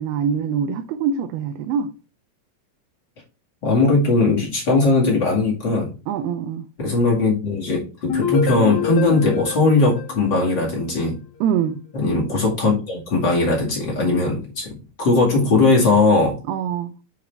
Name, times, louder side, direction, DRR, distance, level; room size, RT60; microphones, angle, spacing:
voice 1, 0.0-1.9 6.1-6.7 11.4-11.8 16.5-16.9, right 7 dB, 85° right, 2.6 m, -24 dB
voice 2, 3.6-5.9 6.8-11.2 11.9-16.4, left 3 dB, 35° left, 2.0 m, -19 dB
sound 1, 8.1-11.0, left 6 dB, 60° left, 1.5 m, -27 dB
7.8 x 4.8 x 3.4 m
omnidirectional pair, 4.4 m